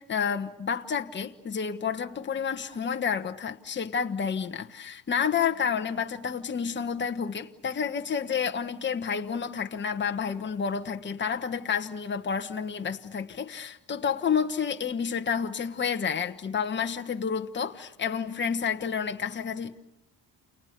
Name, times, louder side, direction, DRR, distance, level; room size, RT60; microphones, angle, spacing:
voice 1, 0.0-19.8, left 6 dB, 25° left, 1.3 m, -30 dB
30.0 x 29.0 x 6.8 m
cardioid pair, 135°, 42 cm